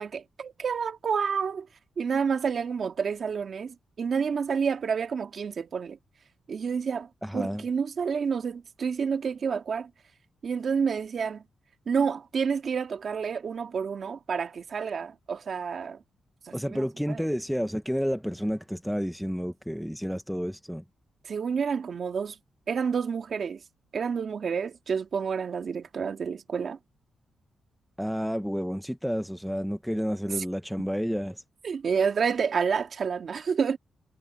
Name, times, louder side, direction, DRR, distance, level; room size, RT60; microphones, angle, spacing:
voice 1, 0.0-1.7 2.0-6.0 6.5-7.1 7.3-9.9 10.4-11.4 11.9-16.0 16.5-17.3 21.2-22.4 22.7-23.6 23.9-26.8 31.6-33.8, right 6 dB, 45° right, 2.3 m, -29 dB
voice 2, 7.2-7.6 16.5-20.8 28.0-31.4, equal, ahead, 0.6 m, -30 dB
wide cardioid pair, 150°, 0 cm